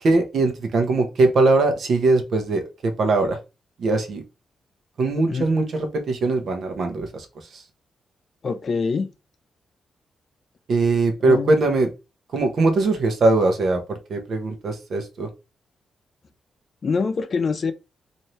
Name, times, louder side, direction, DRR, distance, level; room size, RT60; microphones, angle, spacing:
voice 1, 0.0-3.4 3.8-4.2 5.0-7.3 7.5-7.6 10.7-11.9 12.3-15.3, right 3 dB, 60° right, 0.9 m, -21 dB
voice 2, 5.3-5.7 8.4-9.1 11.2-11.7 16.8-17.7, left 5 dB, 45° left, 0.5 m, -25 dB
4.2 x 2.7 x 3.2 m
wide cardioid pair, 130°, 0 cm